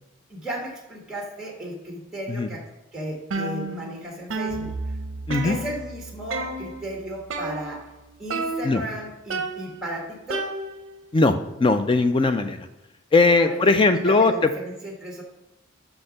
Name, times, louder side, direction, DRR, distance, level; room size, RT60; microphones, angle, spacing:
voice 1, 0.3-2.6 2.9-4.7 5.4-7.9 8.2-10.4 13.4-15.2, right 1 dB, 5° right, -1 dB, 1.2 m, -35 dB
sound 1, 3.3-4.0 4.3-6.0 6.3-6.9 7.3-8.0 8.3-8.9 9.3-11.0, right 3 dB, 60° right, 0.6 m, -31 dB
Bowed string instrument, 4.5-8.7, right 2 dB, 55° left, 1.3 m, -39 dB
voice 2, 11.1-12.6 13.1-14.5, left 3 dB, 25° left, 9 dB, 0.3 m, -19 dB
5.8 x 4.4 x 5.0 m, 0.98 s
head